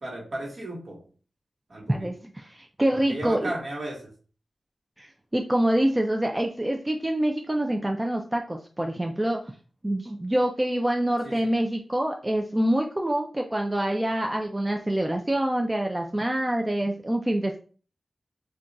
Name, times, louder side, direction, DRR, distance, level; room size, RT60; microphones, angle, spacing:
voice 1, 0.0-1.0 1.7-2.1 3.1-4.1 11.2-11.4, right 1 dB, 60° right, -2 dB, 1.2 m, -34 dB
voice 2, 1.9-3.5 5.0-9.5 9.8-17.6, right 1 dB, 15° right, 2 dB, 0.3 m, -26 dB
2.4 x 2.2 x 3.9 m, 0.39 s
wide cardioid pair, 95°, 0 cm